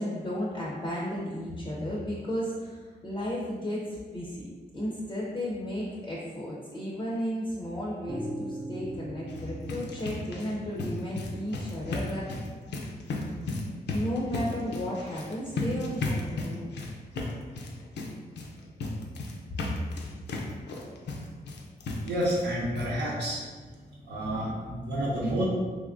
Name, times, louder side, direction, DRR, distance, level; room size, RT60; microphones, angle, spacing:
voice 1, 0.0-4.5 4.7-12.3 13.9-16.7, equal, 25° left, -4 dB, 0.5 m, -34 dB
sound 1, 8.1-16.0, right 1 dB, 30° right, 0.4 m, -44 dB
sound 2, 9.2-22.5 22.7-22.9 23.3-23.4 23.7-23.8, left 2 dB, 80° left, 0.5 m, -35 dB
voice 2, 22.0-23.5 24.0-25.4, right 1 dB, 85° right, -7 dB, 0.8 m, -29 dB
3.4 x 2.9 x 2.5 m, 1.5 s
wide cardioid pair, 145°, 18 cm